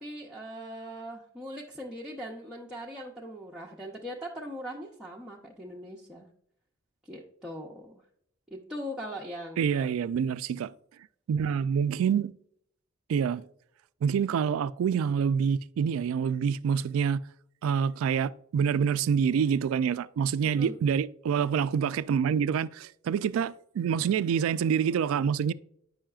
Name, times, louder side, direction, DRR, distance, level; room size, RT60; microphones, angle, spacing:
voice 1, 0.0-6.3 7.1-8.0 8.5-9.9 20.4-20.7, equal, 5° right, 0.6 m, -40 dB
voice 2, 9.6-10.7 11.3-12.3 13.1-13.4 14.0-17.2 17.6-25.5, right 7 dB, 80° right, 0.3 m, -26 dB
8.7 x 5.6 x 2.3 m
head